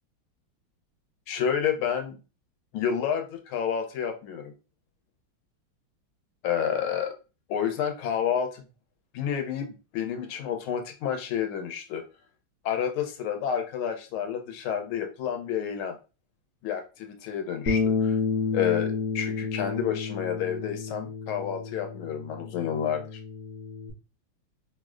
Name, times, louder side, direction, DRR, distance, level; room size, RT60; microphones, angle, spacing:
voice 1, 1.3-2.2 2.7-4.5 6.4-7.1 7.5-8.6 9.1-12.0 12.6-16.0 16.6-18.2 18.5-23.2, left 8 dB, 90° left, 4 dB, 1.5 m, -29 dB
Bass guitar, 17.7-23.9, left 5 dB, 60° left, 1.0 m, -30 dB
4.8 x 2.1 x 2.4 m, 0.31 s
omnidirectional pair, 2.3 m